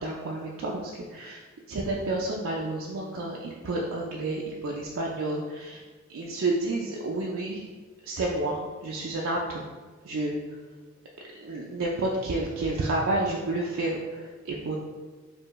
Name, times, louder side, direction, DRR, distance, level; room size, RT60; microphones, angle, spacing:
voice 1, 0.0-1.4 1.7-5.8 6.1-7.6 8.0-9.6 10.0-10.4 11.4-14.8, right 2 dB, 65° right, -2 dB, 0.4 m, -30 dB
4.4 x 2.6 x 3.0 m, 1.4 s
head